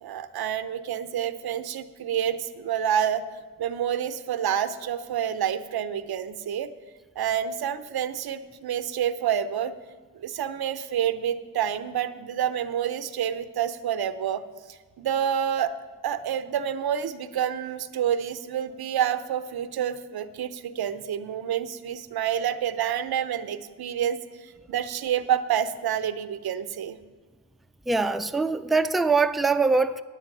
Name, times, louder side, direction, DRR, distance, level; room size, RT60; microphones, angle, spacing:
voice 1, 0.0-3.2 3.6-6.7 7.2-9.7 10.2-14.4 15.0-15.7 16.0-27.0, right 9 dB, 80° right, 0.6 m, -28 dB
voice 2, 27.9-30.0, right 4 dB, ahead, 0.4 m, -23 dB
9.8 x 9.0 x 5.9 m
cardioid pair, 45°, 37 cm